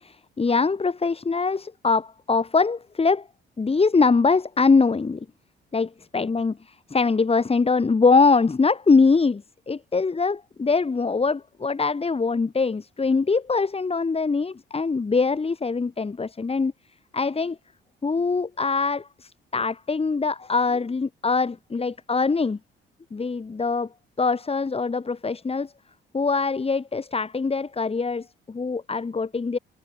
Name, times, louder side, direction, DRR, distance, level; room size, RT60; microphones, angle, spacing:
voice 1, 0.0-3.3 3.6-5.2 5.7-6.5 6.9-16.7 17.1-17.6 18.0-22.6 23.1-23.9 24.2-25.7 26.1-29.6, left 4 dB, 30° left, 6.8 m, -23 dB
cardioid pair, 90°, 20 cm